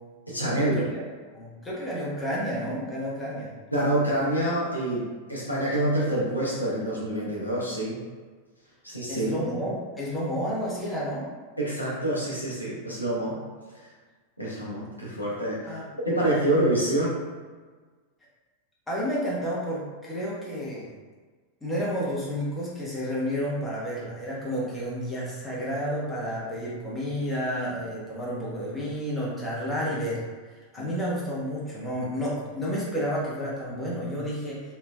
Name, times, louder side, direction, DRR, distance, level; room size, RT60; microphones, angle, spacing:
voice 1, 0.3-0.8 3.7-8.0 8.8-9.3 11.6-13.4 14.4-15.7 16.0-17.1 30.8-30.9, right 1 dB, 85° left, -7 dB, 0.9 m, -26 dB
voice 2, 1.3-3.5 9.1-11.3 15.6-15.8 18.9-20.9 21.6-30.2 30.7-34.7, equal, 10° left, -7 dB, 1.0 m, -31 dB
3.3 x 2.9 x 2.3 m, 1.4 s
figure-of-eight pair, 90°, 0 cm